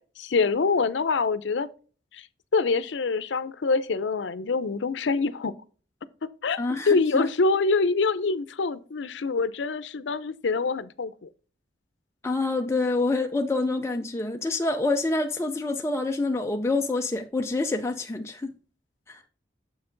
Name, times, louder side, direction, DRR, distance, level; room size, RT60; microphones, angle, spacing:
voice 1, 0.2-1.7 2.1-2.3 2.5-5.5 6.4-6.6 6.9-11.3, left 4 dB, 85° left, 0.6 m, -25 dB
voice 2, 6.6-7.3 12.2-18.5 19.1-19.2, left 2 dB, 15° left, 0.4 m, -27 dB
7.3 x 5.9 x 3.8 m
head